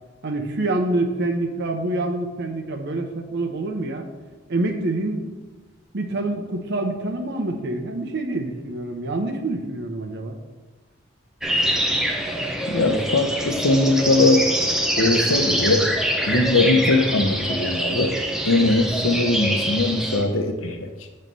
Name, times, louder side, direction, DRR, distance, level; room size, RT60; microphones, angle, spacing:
voice 1, 0.2-4.1 4.5-5.3 5.9-10.4, right 2 dB, 60° right, 4 dB, 0.8 m, -26 dB
sound 1, 11.4-20.2, right 1 dB, 5° right, 0.6 m, -24 dB
voice 2, 12.7-14.5 15.0-15.9 16.3-18.1 18.4-20.9, left 2 dB, 85° left, 5 dB, 0.8 m, -20 dB
7.5 x 3.2 x 5.3 m, 1.3 s
head